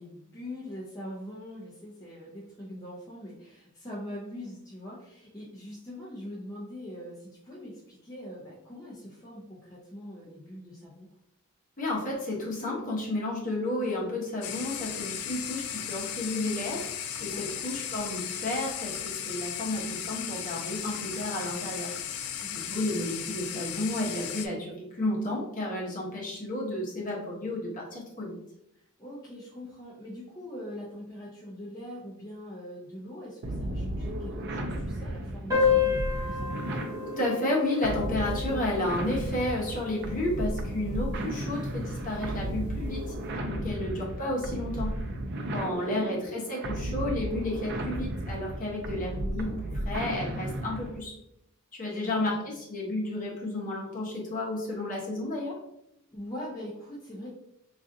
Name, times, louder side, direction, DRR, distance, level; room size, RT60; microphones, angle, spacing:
voice 1, 0.0-11.1 17.3-17.7 22.4-22.9 26.9-27.0 28.7-36.6 43.6-43.9 45.6-46.2 51.9-52.4 56.1-57.3, left 1 dB, 15° left, -6 dB, 0.6 m, -43 dB
voice 2, 11.8-16.9 17.2-21.9 22.5-28.4 37.0-43.0 43.4-44.9 45.5-51.1 51.8-55.6, left 1 dB, 40° left, -3 dB, 1.0 m, -32 dB
sound 1, 14.4-24.5, left 9 dB, 80° left, 0.3 m, -36 dB
sound 2, 33.4-51.0, right 1 dB, 55° right, 0.4 m, -34 dB
sound 3, 35.5-40.5, left 6 dB, 15° right, 1.3 m, -30 dB
3.8 x 2.5 x 2.6 m, 0.78 s
head